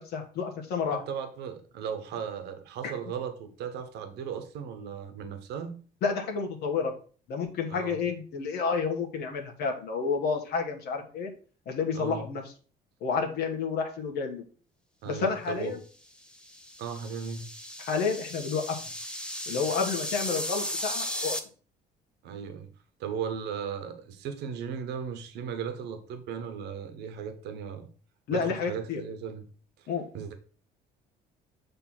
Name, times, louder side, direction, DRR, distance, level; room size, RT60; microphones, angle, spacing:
voice 1, 0.0-1.0 2.8-2.9 6.0-6.9 7.3-11.3 11.7-12.4 13.0-14.4 15.0-15.8 17.8-18.8 19.5-21.4 28.3-29.0 29.9-30.1, left 5 dB, 70° left, 2 dB, 1.5 m, -30 dB
voice 2, 0.9-5.8 7.7-8.0 11.9-12.3 15.0-15.7 16.8-17.5 22.2-22.7 23.0-27.9 28.3-29.5 29.8-29.9 30.1-30.3, right 7 dB, 80° right, 7 dB, 1.1 m, -36 dB
sound 1, 16.3-21.4, equal, 5° left, 0.9 m, -35 dB
6.7 x 3.4 x 5.9 m, 0.40 s
cardioid pair, 110°, 17 cm